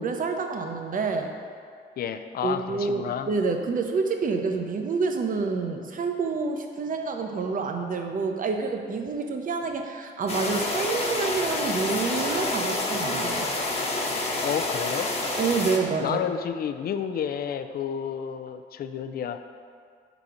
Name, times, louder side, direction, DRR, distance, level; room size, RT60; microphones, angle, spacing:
voice 1, 0.0-1.3 2.4-13.5 15.4-16.2, right 4 dB, 45° right, 4 dB, 0.7 m, -28 dB
voice 2, 2.0-3.3 14.4-15.1 16.0-19.4, left 8 dB, 50° left, 9 dB, 0.4 m, -30 dB
sound 1, 10.3-15.8, left 2 dB, 30° left, 1.0 m, -28 dB
4.8 x 4.0 x 5.7 m, 2.1 s
cardioid pair, 90°, 20 cm